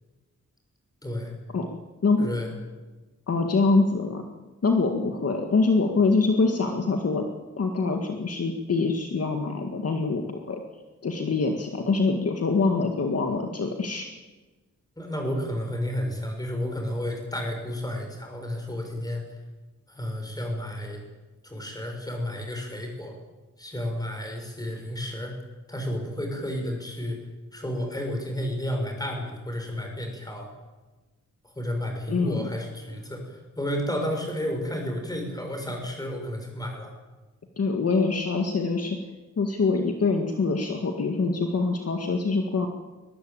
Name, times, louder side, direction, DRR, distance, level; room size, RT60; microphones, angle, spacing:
voice 1, 1.0-1.3 2.2-2.5 15.0-19.2 19.9-21.0 21.4-23.1 23.6-25.3 25.7-27.2 27.5-30.5 31.4-36.9, left 1 dB, 10° left, 2 dB, 6.6 m, -31 dB
voice 2, 3.3-4.2 4.6-7.2 7.6-10.6 11.0-14.1 32.1-32.4 37.6-39.0 39.4-42.7, left 3 dB, 55° left, 3 dB, 2.0 m, -24 dB
22.0 x 21.5 x 8.8 m, 1.2 s
wide cardioid pair, 165°, 30 cm